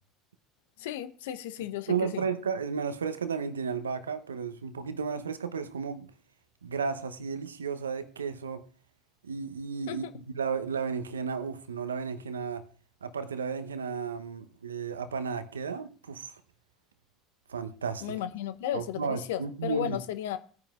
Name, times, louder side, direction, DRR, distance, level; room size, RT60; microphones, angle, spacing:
voice 1, 0.8-2.2 9.9-10.1 18.0-20.4, left 11 dB, 70° left, 0.8 m, -34 dB
voice 2, 1.9-6.1 6.6-8.6 9.2-12.6 13.0-16.3 17.5-18.2 18.7-20.0, right 6 dB, 85° right, 0.9 m, -33 dB
19.0 x 9.4 x 2.5 m
figure-of-eight pair, 70°, 0 cm